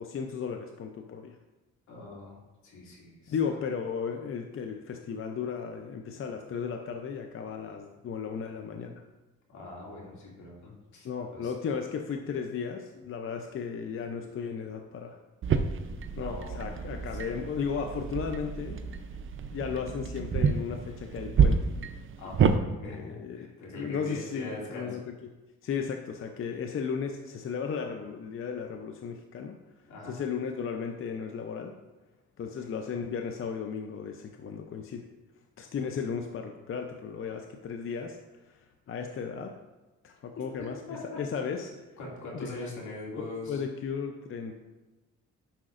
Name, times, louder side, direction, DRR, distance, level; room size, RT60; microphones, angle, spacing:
voice 1, 0.0-1.4 3.3-9.0 11.0-15.2 16.2-18.9 19.5-21.6 22.8-23.5 23.7-25.0 25.6-29.6 30.0-31.7 32.4-35.1 35.6-39.6 40.0-41.8 42.3-42.5 43.2-44.5, left 6 dB, 45° left, 5 dB, 0.6 m, -35 dB
voice 2, 1.9-2.4 2.6-3.3 9.5-11.5 16.1-17.0 22.2-25.0 29.9-30.1 40.9-41.2 42.0-43.6, left 2 dB, 75° left, -4 dB, 2.4 m, -42 dB
sound 1, 15.4-22.6, right 6 dB, 45° right, 0.6 m, -29 dB
10.0 x 5.9 x 2.5 m, 1.1 s
cardioid pair, 90°, 30 cm